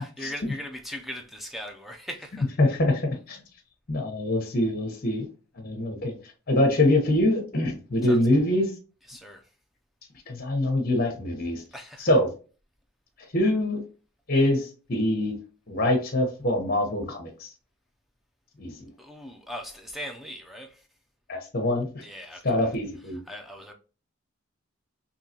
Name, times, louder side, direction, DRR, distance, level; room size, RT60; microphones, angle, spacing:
voice 1, 0.2-2.5 8.1-8.2 9.1-9.4 11.7-12.1 19.0-20.8 22.0-22.7 23.3-23.7, equal, ahead, 0.4 m, -39 dB
voice 2, 2.6-3.4 3.9-5.2 5.6-6.2 6.5-8.7 10.3-11.6 12.0-12.3 13.3-13.8 14.3-15.4 15.7-17.5 18.6-18.9 21.3-22.0 22.4-23.2, left 1 dB, 45° left, 0.9 m, -24 dB
3.8 x 2.8 x 2.8 m
head